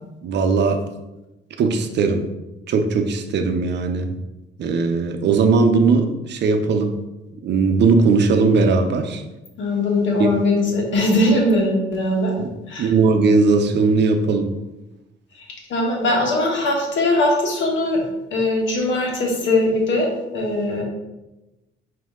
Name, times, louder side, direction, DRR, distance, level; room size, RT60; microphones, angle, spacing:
voice 1, 0.2-0.8 1.6-2.2 2.7-4.1 4.6-6.9 7.4-9.2 10.2-10.3 12.4-12.5 12.8-14.5, right 4 dB, 60° right, 5 dB, 0.6 m, -18 dB
voice 2, 9.6-12.3 12.7-12.9 15.7-18.0 18.3-20.8, left 1 dB, 70° left, 0 dB, 1.3 m, -20 dB
5.1 x 2.8 x 3.6 m, 1.0 s
cardioid pair, 90°, 20 cm